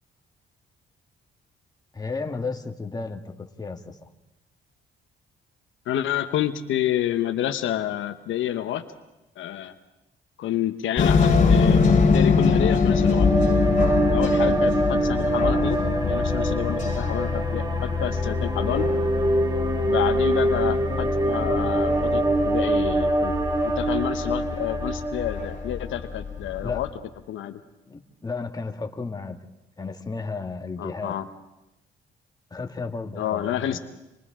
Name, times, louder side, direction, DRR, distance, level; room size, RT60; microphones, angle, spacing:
voice 1, 1.9-3.2 3.6-4.1 26.6-26.8 27.9-29.4 29.8-31.2 32.5-33.8, left 4 dB, 20° left, 4 dB, 1.7 m, -33 dB
voice 2, 5.9-8.8 9.4-9.7 10.4-13.3 14.1-15.8 16.0-18.9 19.9-23.3 23.6-26.9 27.3-27.6 30.8-31.2 33.2-33.8, left 11 dB, 80° left, 9 dB, 1.1 m, -29 dB
sound 1, 11.0-26.9, left 5 dB, 40° left, 2.8 m, -24 dB
sound 2, 12.6-26.0, right 2 dB, 20° right, 2.8 m, -25 dB
29.5 x 25.5 x 3.8 m, 0.96 s
cardioid pair, 90°, 20 cm